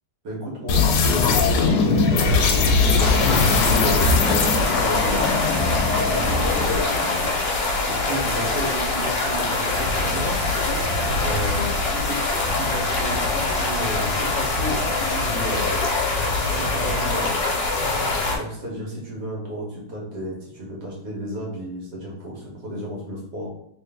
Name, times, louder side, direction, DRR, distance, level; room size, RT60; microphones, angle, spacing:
voice 1, 0.2-2.8 3.5-5.3 5.9-10.3 11.1-16.1 16.5-17.4 18.3-23.5, right 1 dB, 55° right, -3 dB, 1.5 m, -33 dB
sound 1, 0.7-6.9, left 4 dB, 80° left, 1.5 m, -20 dB
sound 2, 3.0-18.4, left 3 dB, 60° left, 1.2 m, -24 dB
3.2 x 3.0 x 3.4 m, 0.74 s
omnidirectional pair, 2.4 m